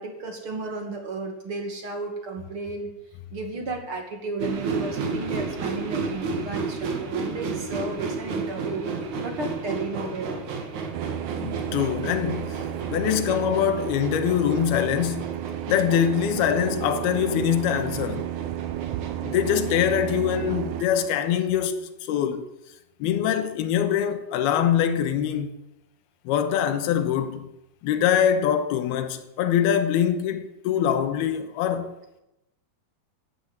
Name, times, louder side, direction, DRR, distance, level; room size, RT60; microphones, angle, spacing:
voice 1, 0.0-2.9 3.3-8.8 9.2-10.4, right 3 dB, 40° right, 2.6 m, -33 dB
sound 1, 4.4-21.2, right 4 dB, 55° right, 3.0 m, -33 dB
sound 2, 10.9-20.8, right 12 dB, 90° right, 1.7 m, -32 dB
voice 2, 11.4-12.6 12.9-15.3 15.7-18.3 19.2-22.5 23.0-25.5 26.3-27.5 27.8-32.0, left 9 dB, 80° left, 3.1 m, -24 dB
16.5 x 10.0 x 8.1 m
omnidirectional pair, 4.5 m